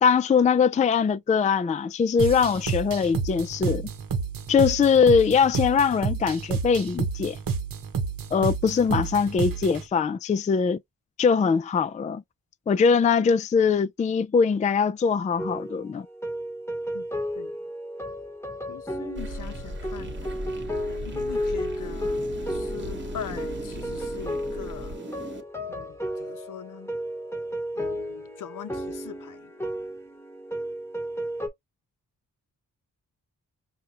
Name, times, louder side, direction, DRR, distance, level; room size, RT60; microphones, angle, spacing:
voice 1, 0.0-3.9 4.5-7.4 8.3-10.8 11.2-12.2 12.7-16.1, left 6 dB, 25° left, 0.3 m, -22 dB
sound 1, 2.2-9.9, right 5 dB, 75° right, 0.9 m, -30 dB
sound 2, 15.4-31.5, equal, 5° left, 1.0 m, -33 dB
voice 2, 18.7-20.4 21.0-25.0 25.7-26.9 27.7-29.5, left 9 dB, 65° left, 0.6 m, -42 dB
sound 3, 19.1-25.4, right 1 dB, 35° right, 1.1 m, -37 dB
5.2 x 2.2 x 2.8 m
cardioid pair, 75°, 34 cm